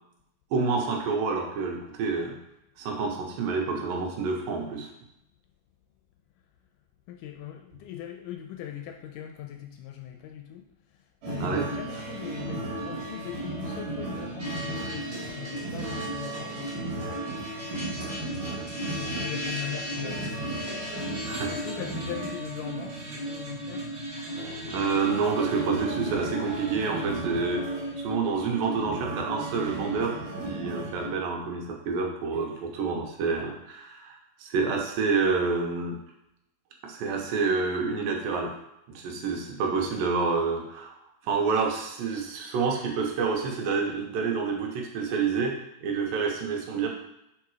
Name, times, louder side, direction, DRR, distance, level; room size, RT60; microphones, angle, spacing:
voice 1, 0.5-2.4 2.8-4.9 11.4-11.7 11.9-12.0 21.3-21.5 24.6-27.6 28.0-30.1 30.4-36.0 36.8-38.5 38.9-41.0 41.2-45.5 45.8-46.9, right 4 dB, 85° right, 1 dB, 2.7 m, -28 dB
voice 2, 7.1-10.7 11.3-17.3 17.5-20.5 21.5-23.9, left 11 dB, 80° left, 4 dB, 2.0 m, -40 dB
sound 1, 11.2-31.1, right 2 dB, 60° right, 2.4 m, -35 dB
sound 2, 14.4-28.8, left 1 dB, 30° right, 1.7 m, -41 dB
5.8 x 4.6 x 4.7 m, 0.83 s
omnidirectional pair, 4.0 m